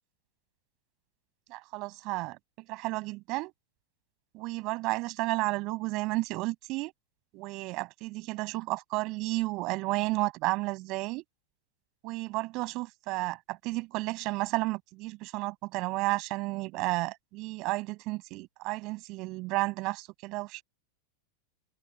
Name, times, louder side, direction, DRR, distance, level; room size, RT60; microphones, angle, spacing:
voice 1, 1.5-3.5 4.3-6.9 7.3-11.2 12.0-20.6, right 22 dB, 40° right, 7.9 m, -32 dB
open air
figure-of-eight pair, 90°, 0 cm